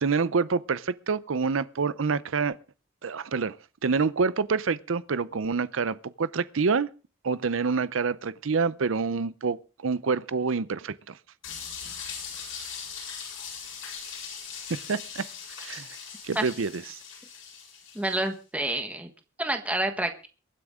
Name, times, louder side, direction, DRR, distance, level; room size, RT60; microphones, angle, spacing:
voice 1, 0.0-2.6 3.0-3.6 3.8-6.9 7.2-9.6 9.8-10.9 14.9-15.2 15.6-15.9 16.2-17.0, right 5 dB, 75° right, 0.6 m, -27 dB
sound 1, 11.4-18.3, left 6 dB, 85° left, 7.8 m, -40 dB
voice 2, 17.9-19.1 19.4-20.3, right 1 dB, 5° right, 1.4 m, -28 dB
23.5 x 9.7 x 3.7 m
head